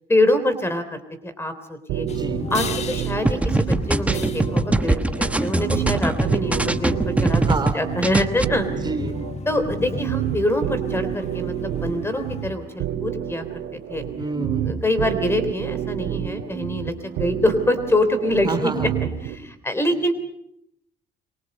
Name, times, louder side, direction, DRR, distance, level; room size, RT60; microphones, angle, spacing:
voice 1, 0.1-2.1 2.5-7.4 7.7-8.9 9.5-13.6 13.9-14.0 14.6-18.9 19.2-20.1, left 1 dB, 15° left, 10 dB, 3.4 m, -25 dB
sound 1, 1.9-19.4, right 10 dB, 85° right, 2.5 m, -29 dB
voice 2, 2.0-2.5 7.4-7.8 8.8-9.2 14.2-14.8 18.4-18.9, right 3 dB, 25° right, 9 dB, 3.4 m, -28 dB
sound 2, 2.1-12.5, left 5 dB, 40° left, 1.6 m, -35 dB
sound 3, 3.3-7.7 8.0-8.4, right 2 dB, 10° right, 1.2 m, -22 dB
27.5 x 23.5 x 5.4 m, 0.75 s
cardioid pair, 110°, 17 cm